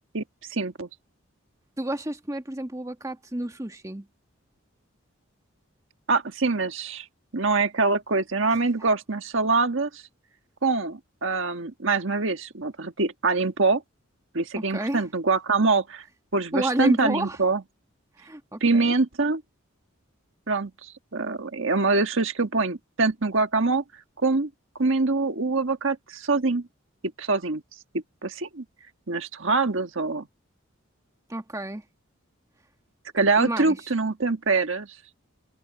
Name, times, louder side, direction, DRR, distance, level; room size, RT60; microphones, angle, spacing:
voice 1, 0.5-0.9 6.1-7.0 7.3-10.0 10.6-13.8 14.3-16.0 16.3-17.6 18.6-19.4 20.5-23.8 24.2-24.5 24.8-26.7 27.2-27.6 28.2-28.6 29.1-30.3 33.1-34.9, right 3 dB, 65° right, 1.5 m, -24 dB
voice 2, 1.8-4.1 14.5-15.0 16.5-17.4 18.2-18.9 31.3-31.8 33.4-33.8, right 1 dB, 15° right, 1.6 m, -30 dB
open air
head